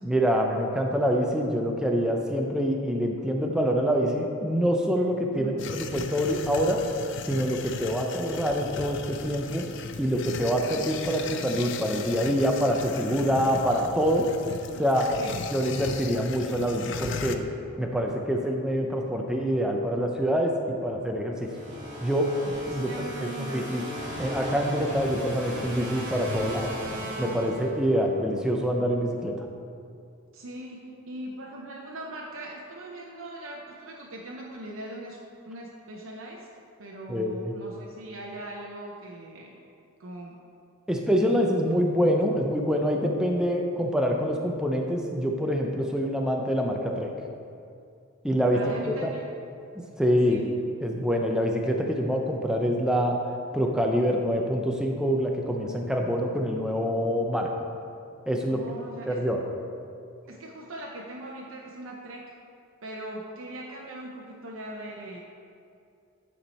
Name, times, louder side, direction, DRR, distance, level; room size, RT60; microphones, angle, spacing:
voice 1, 0.0-6.8 7.3-9.7 10.0-14.3 14.8-15.1 15.5-17.5 17.8-21.5 22.0-23.8 24.2-26.7 27.2-29.5 37.1-37.5 40.9-47.1 48.2-49.1 50.0-50.4 50.8-53.2 53.5-57.5 58.3-58.6 59.1-59.4, equal, 5° right, 1 dB, 0.5 m, -26 dB
sound 1, 5.6-17.4, left 5 dB, 55° left, 0.4 m, -37 dB
sound 2, 21.4-28.1, equal, 35° right, 1.7 m, -36 dB
voice 2, 22.7-23.8 26.3-26.5 30.3-35.2 35.5-36.5 36.8-39.6 40.0-40.4 48.5-49.2 50.2-50.5 58.5-59.2 60.3-62.3 62.8-65.2, right 1 dB, 70° right, -2 dB, 0.7 m, -40 dB
9.8 x 4.5 x 4.2 m, 2.5 s
head